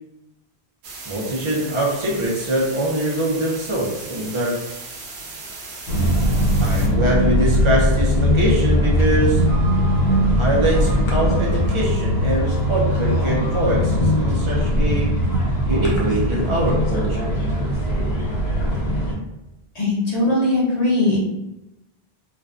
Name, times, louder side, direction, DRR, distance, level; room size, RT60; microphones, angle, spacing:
sound 1, 0.8-6.9, right 3 dB, 80° right, 0.8 m, -37 dB
voice 1, 1.1-4.6 6.6-9.4 10.1-15.1 15.7-17.3, right 1 dB, 40° right, -4 dB, 0.5 m, -23 dB
sound 2, 5.9-19.1, equal, 80° left, 0.9 m, -20 dB
voice 2, 19.7-21.2, left 2 dB, 45° left, -6 dB, 0.7 m, -19 dB
2.5 x 2.1 x 2.4 m, 0.96 s
omnidirectional pair, 1.1 m